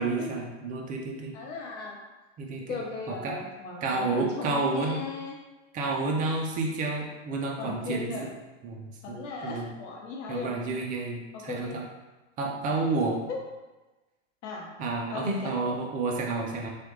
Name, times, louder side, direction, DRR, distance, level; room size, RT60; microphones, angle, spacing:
voice 1, 0.0-1.3 2.4-2.8 3.1-3.4 3.8-5.0 5.7-8.3 8.6-8.8 9.1-9.2 9.4-9.7 10.3-11.8 12.4-13.2 14.8-16.7, right 3 dB, 20° right, 0 dB, 0.4 m, -30 dB
voice 2, 1.3-2.0 2.7-5.3 7.6-8.2 9.0-10.5 11.3-11.8 13.3-13.4 14.4-14.7 15.1-15.5, left 4 dB, 65° left, -2 dB, 1.0 m, -37 dB
3.2 x 2.4 x 3.0 m, 1.1 s
hypercardioid pair, 115°, 39 cm